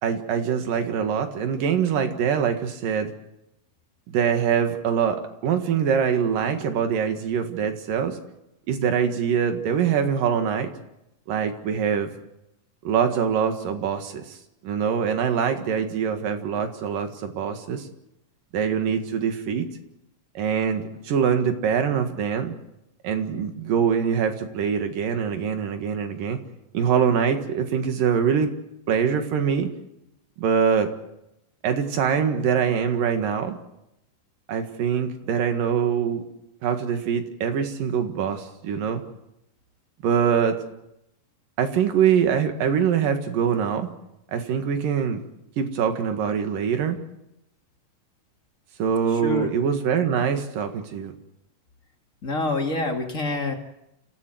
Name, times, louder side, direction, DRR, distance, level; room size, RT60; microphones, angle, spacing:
voice 1, 0.0-3.1 4.1-8.2 8.7-10.7 11.3-12.1 12.9-14.4 14.6-17.9 18.5-19.7 20.4-22.6 23.0-26.4 26.7-28.5 28.9-29.7 30.4-30.9 31.6-33.6 34.5-36.2 36.6-39.0 40.0-40.6 41.6-43.9 44.3-45.2 45.6-47.0 48.8-51.1, right 7 dB, 80° right, 6 dB, 3.5 m, -24 dB
voice 2, 49.1-49.5 52.2-53.5, left 2 dB, 25° left, 2 dB, 2.3 m, -26 dB
29.0 x 15.0 x 7.9 m, 0.85 s
omnidirectional pair, 3.8 m